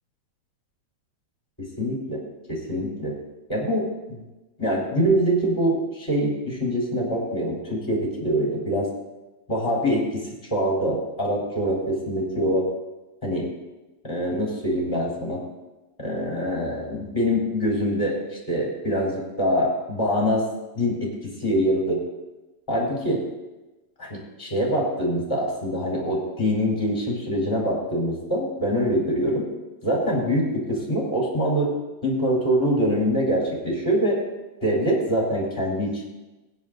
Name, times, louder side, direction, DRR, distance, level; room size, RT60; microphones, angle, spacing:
voice 1, 1.6-2.2 2.5-3.2 3.5-4.2 4.6-8.9 9.5-10.2 10.5-12.7 13.2-13.5 14.0-15.4 16.0-18.1 18.5-20.4 20.7-22.0 22.7-23.2 24.0-29.5 29.8-31.7 32.0-34.2 34.6-36.0, equal, 5° left, -4 dB, 4.1 m, -24 dB
22.5 x 10.5 x 2.7 m, 1.1 s
omnidirectional pair, 5.9 m